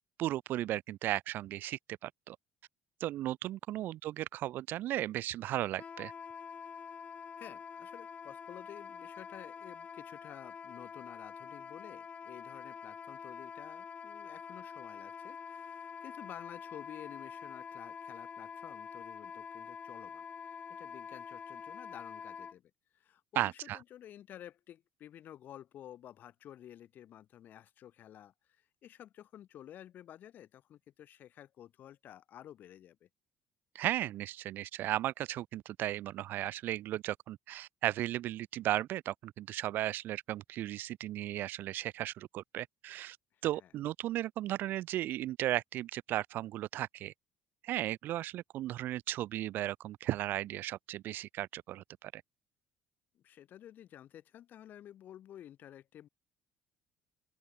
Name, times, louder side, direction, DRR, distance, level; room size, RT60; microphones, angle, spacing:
voice 1, 0.2-2.4 3.0-6.1 23.4-23.8 33.7-43.2 43.4-47.1 47.6-52.2, right 14 dB, 65° right, 0.4 m, -35 dB
Wind instrument woodwind instrument, 5.8-22.5, left 6 dB, 35° left, 1.2 m, -46 dB
voice 2, 7.4-33.1 43.5-43.7 53.1-56.1, left 11 dB, 55° left, 1.6 m, -52 dB
open air
cardioid pair, 105°, 4 cm